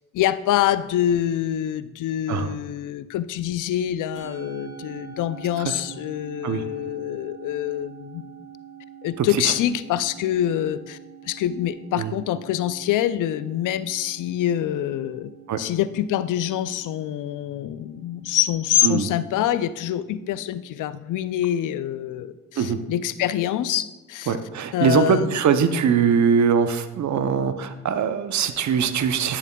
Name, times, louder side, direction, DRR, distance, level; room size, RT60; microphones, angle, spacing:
voice 1, 0.1-8.3 9.0-11.0 11.2-15.3 15.6-24.4 24.7-25.4, left 12 dB, 75° left, 14 dB, 0.5 m, -25 dB
Musical instrument, 4.2-22.7, right 8 dB, 75° right, 2.3 m, -46 dB
voice 2, 24.3-29.4, right 7 dB, 60° right, 10 dB, 0.7 m, -22 dB
10.0 x 7.0 x 2.3 m, 1.1 s
supercardioid pair, 50°, 32 cm